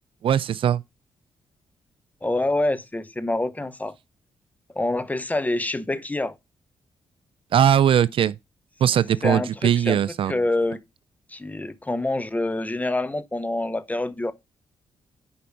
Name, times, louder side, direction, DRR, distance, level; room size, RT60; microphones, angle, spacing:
voice 1, 0.2-0.8 7.5-8.3 8.8-10.4, right 9 dB, 65° right, 0.4 m, -20 dB
voice 2, 2.2-3.9 4.7-6.3 9.2-10.0 10.3-10.8 11.3-14.3, left 2 dB, 15° left, 0.8 m, -26 dB
7.0 x 5.2 x 4.5 m
cardioid pair, 70°, 10 cm